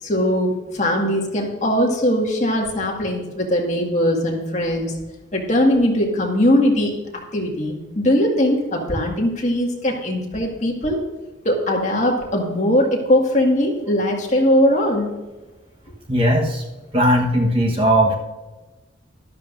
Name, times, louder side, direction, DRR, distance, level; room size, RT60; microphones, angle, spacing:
voice 1, 0.0-4.9 5.3-6.9 7.3-11.0 11.4-15.1, left 1 dB, 35° left, -1 dB, 1.9 m, -20 dB
voice 2, 16.1-16.6 16.9-18.1, equal, 30° right, 1 dB, 1.2 m, -18 dB
12.5 x 12.0 x 2.6 m, 1.1 s
head